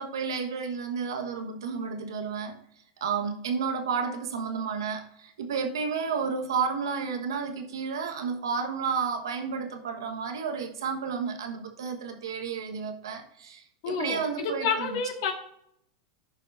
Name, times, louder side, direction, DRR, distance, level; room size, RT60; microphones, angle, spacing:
voice 1, 0.0-2.6 3.0-15.0, right 5 dB, 85° right, 5 dB, 1.3 m, -31 dB
voice 2, 13.8-15.3, left 5 dB, 65° left, 3 dB, 1.9 m, -29 dB
15.0 x 5.5 x 2.6 m, 0.73 s
hypercardioid pair, 110°, 2 cm